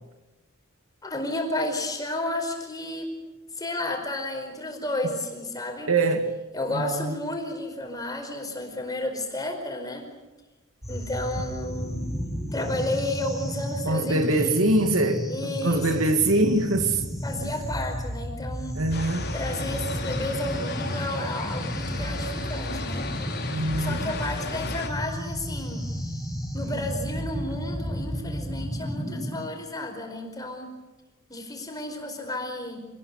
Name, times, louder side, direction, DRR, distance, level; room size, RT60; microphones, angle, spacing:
voice 1, 1.0-3.1 3.6-5.9 6.5-10.1 10.9-12.0 12.5-14.6 15.3-16.1 17.2-18.8 19.3-23.1 23.8-25.9 26.5-30.7 31.3-32.9, left 1 dB, 20° left, 4.9 m, -32 dB
voice 2, 5.9-6.4 6.7-7.2 13.9-17.0 18.8-19.3 23.5-24.1 29.1-29.2, right 2 dB, 80° right, 2.3 m, -24 dB
sound 1, 10.8-29.4, equal, ahead, 6.2 m, -32 dB
sound 2, 18.9-24.9, left 3 dB, 50° left, 3.7 m, -35 dB
27.0 x 20.0 x 8.2 m
head